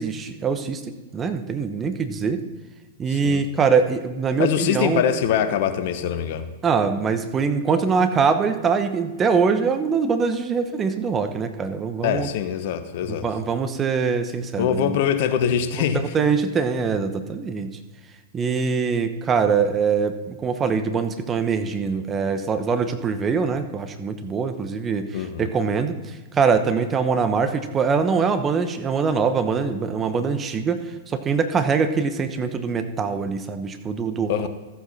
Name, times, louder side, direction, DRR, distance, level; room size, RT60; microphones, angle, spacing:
voice 1, 0.0-2.4 3.0-5.0 6.6-12.3 13.1-15.0 15.8-17.8 18.3-34.5, right 5 dB, 25° right, 8 dB, 1.0 m, -23 dB
voice 2, 3.1-3.4 4.4-6.4 12.0-13.2 14.6-16.0 25.1-25.4 34.3-34.5, left 9 dB, 55° left, 9 dB, 1.0 m, -23 dB
14.5 x 7.9 x 4.1 m, 1.3 s
hypercardioid pair, 105°, 0 cm